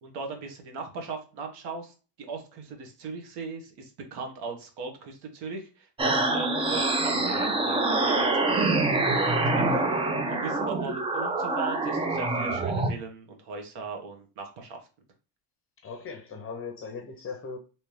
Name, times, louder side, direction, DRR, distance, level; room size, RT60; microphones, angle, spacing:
voice 1, 0.0-14.8, right 4 dB, 60° right, 1.2 m, -39 dB
sound 1, 6.0-12.9, right 2 dB, 15° right, 0.4 m, -25 dB
voice 2, 15.8-17.6, left 5 dB, 30° left, 0.6 m, -38 dB
3.3 x 2.8 x 3.1 m
cardioid pair, 130°, 45 cm